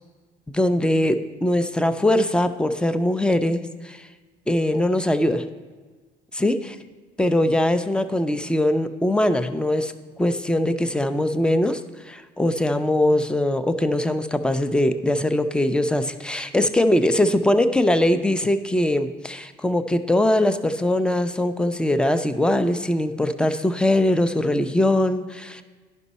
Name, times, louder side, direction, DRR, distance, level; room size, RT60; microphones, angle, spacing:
voice 1, 0.5-4.1 4.5-5.4 6.3-6.6 7.2-11.8 12.1-25.6, left 1 dB, 5° left, 10 dB, 0.4 m, -21 dB
11.0 x 5.4 x 4.1 m, 1.4 s
cardioid pair, 110°, 17 cm